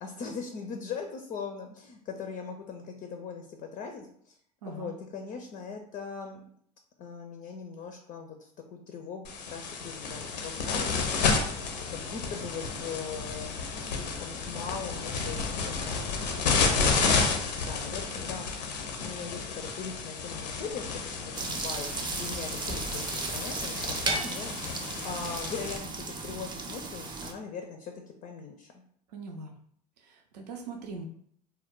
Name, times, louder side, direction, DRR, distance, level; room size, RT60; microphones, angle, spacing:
voice 1, 0.0-4.4 4.6-6.4 7.0-11.4 11.9-15.9 16.7-18.5 19.0-21.3 21.6-27.9 28.2-28.7, left 5 dB, 40° left, 4 dB, 0.4 m, -40 dB
voice 2, 4.6-4.9 29.1-29.5 30.0-31.0, right 3 dB, 80° right, 2 dB, 0.5 m, -41 dB
sound 1, 9.2-25.8, left 4 dB, 85° left, 0.6 m, -31 dB
sound 2, 21.3-27.3, right 3 dB, 20° right, 0.5 m, -35 dB
2.2 x 2.1 x 3.6 m, 0.63 s
hypercardioid pair, 80°, 21 cm